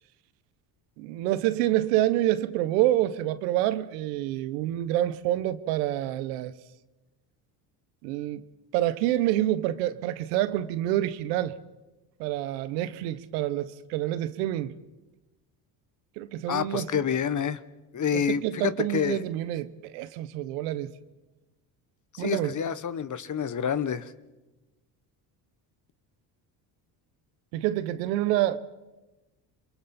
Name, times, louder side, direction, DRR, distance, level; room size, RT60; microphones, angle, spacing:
voice 1, 1.0-6.5 8.0-8.4 8.7-11.6 12.2-14.7 16.2-17.0 18.1-20.9 22.2-22.6 27.5-28.6, right 14 dB, 85° right, 1.1 m, -27 dB
voice 2, 16.5-17.6 17.9-19.2 22.1-24.1, left 8 dB, 40° left, 1.2 m, -28 dB
29.0 x 24.0 x 4.3 m
supercardioid pair, 75°, 48 cm